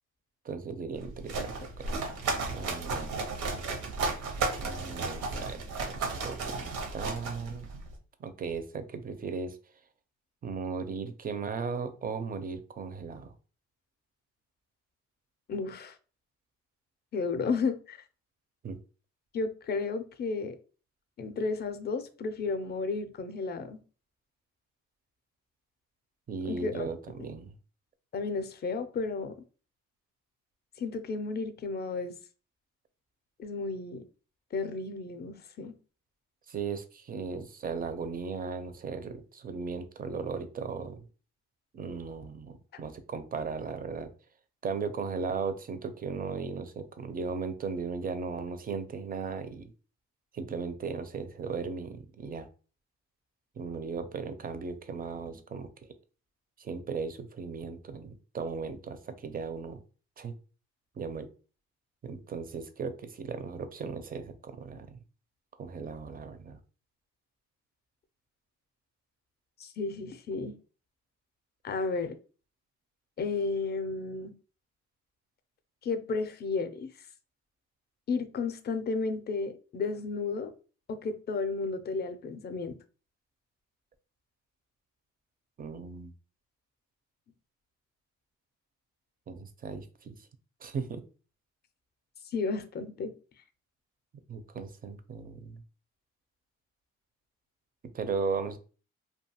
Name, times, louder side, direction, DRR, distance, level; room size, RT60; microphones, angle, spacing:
voice 1, 0.4-1.9 2.5-3.2 4.4-7.7 8.2-9.6 10.4-13.3 18.6-18.8 26.3-27.5 36.5-41.0 41.7-44.1 44.6-49.7 50.3-52.5 53.6-55.7 56.6-59.8 60.2-60.3 61.0-61.3 62.0-65.0 65.6-66.6 85.6-86.1 89.3-90.1 90.6-91.0 94.3-95.6 97.9-98.6, right 5 dB, 30° right, 10 dB, 0.4 m, -37 dB
sound 1, 0.9-7.9, right 3 dB, 80° right, 0.7 m, -34 dB
voice 2, 15.5-15.9 17.1-18.0 19.3-20.6 21.2-23.8 26.4-26.9 27.2-27.3 28.1-29.3 30.8-32.1 33.4-34.0 34.5-35.7 69.6-70.5 71.6-72.2 73.2-74.3 75.8-76.9 78.1-80.5 80.9-82.8 92.3-93.1, left 4 dB, 35° left, 9 dB, 0.4 m, -33 dB
2.5 x 2.3 x 2.7 m, 0.37 s
cardioid pair, 90°, 30 cm